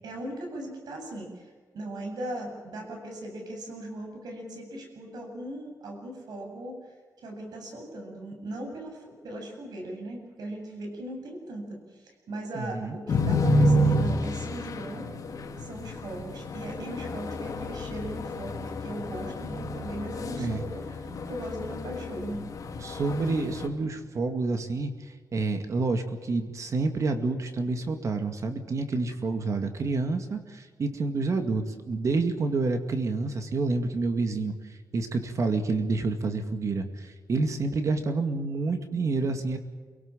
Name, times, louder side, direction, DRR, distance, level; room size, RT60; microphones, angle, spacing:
voice 1, 0.0-6.8 7.2-15.1 15.6-22.4, right 1 dB, 85° right, 2 dB, 7.9 m, -38 dB
voice 2, 12.5-13.0 20.4-20.6 22.8-39.6, right 3 dB, 50° right, 7 dB, 2.2 m, -28 dB
sound 1, 13.1-23.7, equal, 55° left, 3.1 m, -29 dB
28.5 x 18.0 x 7.6 m, 1.5 s
wide cardioid pair, 130°, 7 cm